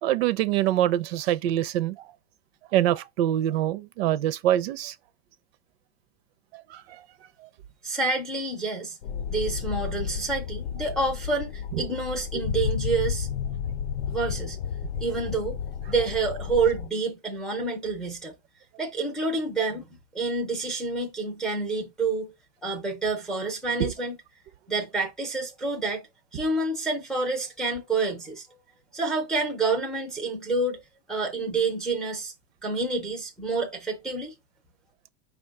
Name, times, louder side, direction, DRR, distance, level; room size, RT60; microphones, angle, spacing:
voice 1, 0.0-2.1 2.7-4.9 6.5-7.0, right 12 dB, 65° right, 0.5 m, -25 dB
voice 2, 7.8-9.0 9.3-13.3 14.1-14.6 15.0-15.6 15.9-18.3 18.8-22.3 22.6-24.2 24.7-26.1 26.3-28.4 28.9-30.8 31.1-32.3 32.6-34.3, right 3 dB, ahead, 0.4 m, -28 dB
sound 1, 9.0-16.9, left 7 dB, 80° left, 0.6 m, -32 dB
5.1 x 2.2 x 3.5 m
supercardioid pair, 160°, 33 cm